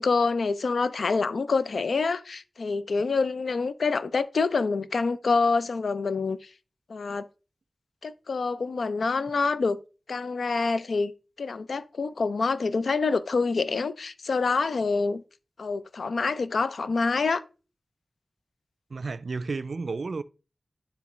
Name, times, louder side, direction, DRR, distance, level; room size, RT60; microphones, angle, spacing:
voice 1, 0.0-6.5 6.9-7.3 8.0-9.8 10.1-11.1 11.4-15.2 15.6-17.4, left 4 dB, 90° left, 0.4 m, -26 dB
voice 2, 18.9-20.2, right 4 dB, 70° right, 0.3 m, -32 dB
9.4 x 3.4 x 3.0 m
wide cardioid pair, 75°, 0 cm